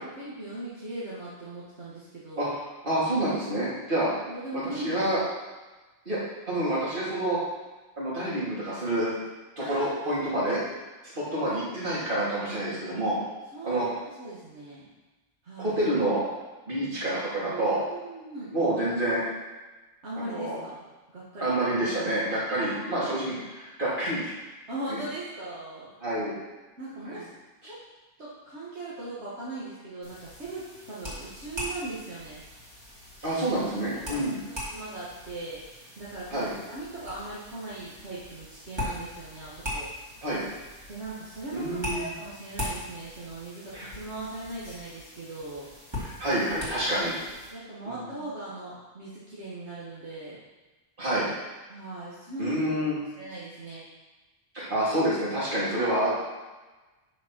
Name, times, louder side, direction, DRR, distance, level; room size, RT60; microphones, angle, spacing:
voice 1, 0.0-2.5 4.0-5.0 9.6-10.5 11.4-11.6 13.5-14.9 15.4-15.8 17.4-18.5 20.0-20.9 21.1-21.6 22.6-23.3 24.7-25.9 26.8-27.3 27.6-27.8 28.2-32.4 33.2-33.4 34.1-35.6 36.0-39.9 40.9-45.7 46.8-47.1 47.5-50.4 51.7-52.6 53.1-53.8 55.8-56.0, right 2 dB, 70° right, -9 dB, 1.9 m, -39 dB
voice 2, 2.4-4.1 4.5-5.2 6.1-6.2 6.5-7.4 8.0-9.1 9.6-10.6 11.1-13.2 13.6-13.9 15.6-16.2 16.7-17.8 18.5-19.2 20.2-20.6 21.4-24.3 24.9-25.0 26.0-26.4 27.0-27.2 33.2-34.4 36.3-36.5 40.2-40.4 41.5-42.1 43.7-43.9 46.0-47.1 47.9-48.2 51.0-51.3 52.4-53.0 54.5-56.1, right 1 dB, 45° right, -8 dB, 2.7 m, -28 dB
sound 1, 30.0-47.5, left 1 dB, 20° right, 2.5 m, -40 dB
6.2 x 5.2 x 6.0 m, 1.2 s
omnidirectional pair, 1.2 m